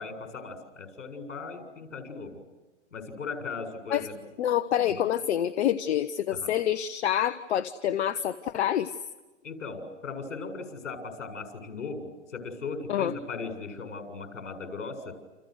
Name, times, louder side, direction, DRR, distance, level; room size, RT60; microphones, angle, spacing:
voice 1, 0.0-2.4 2.9-4.3 4.9-5.0 6.3-6.5 9.4-15.1, left 4 dB, 80° left, 6 dB, 7.3 m, -38 dB
voice 2, 4.4-8.9 12.9-13.1, left 10 dB, 60° left, 12 dB, 1.2 m, -27 dB
29.5 x 28.5 x 6.5 m, 1.2 s
hypercardioid pair, 125°, 37 cm